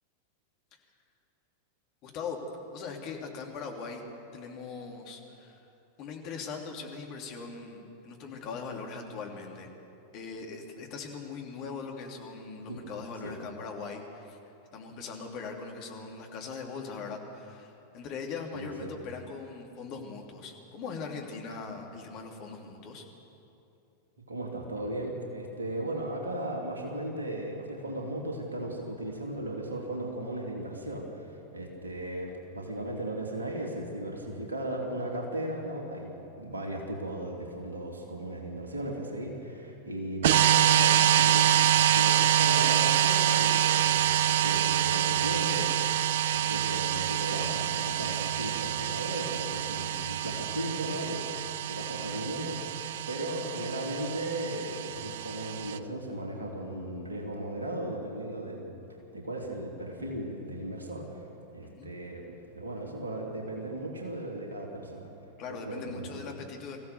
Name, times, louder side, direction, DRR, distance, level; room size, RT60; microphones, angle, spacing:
voice 1, 2.0-2.4 2.7-4.0 4.3-5.6 6.0-9.7 10.1-14.4 14.7-23.0 61.6-61.9 65.4-66.8, left 5 dB, 40° left, 1 dB, 3.1 m, -40 dB
voice 2, 18.5-18.9 24.3-41.6 41.9-51.3 51.7-52.6 53.1-58.7 59.1-61.3 61.5-65.1 65.5-66.2, right 1 dB, 75° right, 0 dB, 2.9 m, -36 dB
sound 1, 40.2-55.8, right 11 dB, 55° right, 0.6 m, -26 dB
24.5 x 15.5 x 7.0 m, 2.8 s
figure-of-eight pair, 90°, 0 cm